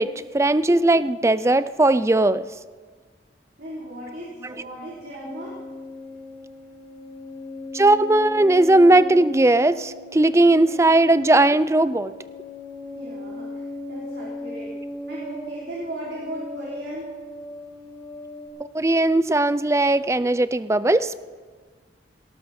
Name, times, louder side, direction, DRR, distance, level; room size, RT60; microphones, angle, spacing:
voice 1, 0.0-2.5 7.7-12.1 18.7-21.2, right 2 dB, 15° right, 15 dB, 0.4 m, -18 dB
voice 2, 3.6-5.6 12.9-14.8 15.1-17.1, right 1 dB, 60° right, -6 dB, 3.8 m, -36 dB
sound 1, 5.2-18.5, left 1 dB, 15° left, 3.8 m, -37 dB
18.5 x 18.0 x 4.3 m, 1.5 s
head